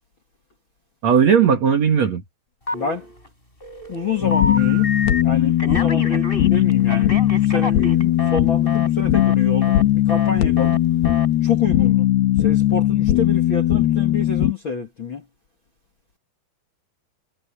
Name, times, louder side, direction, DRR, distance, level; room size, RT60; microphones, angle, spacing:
voice 1, 1.0-2.2, right 7 dB, 50° right, 2.9 m, -16 dB
voice 2, 2.7-3.1 3.9-4.9 5.2-10.8 11.4-12.1 12.4-15.2, left 5 dB, 40° left, 2.2 m, -27 dB
Telephone, 2.7-3.3 3.6-5.2 5.6-8.4 8.7-8.9 9.1-9.4 9.6-9.8 10.1-10.3 10.6-10.8 11.0-11.3, left 2 dB, 10° left, 7.6 m, -29 dB
sound 1, 4.2-14.5, left 13 dB, 80° left, 3.3 m, -18 dB
omnidirectional pair, 4.6 m